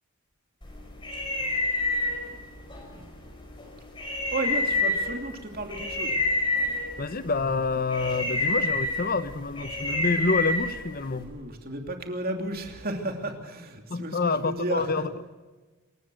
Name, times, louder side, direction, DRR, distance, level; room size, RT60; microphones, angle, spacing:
sound 1, 0.6-11.2, left 2 dB, 20° left, 5.1 m, -29 dB
voice 1, 4.3-6.2 11.1-15.0, right 2 dB, 40° right, 2.9 m, -33 dB
voice 2, 7.0-11.4 13.9-15.1, left 3 dB, 40° left, 0.7 m, -27 dB
27.0 x 15.0 x 6.4 m
head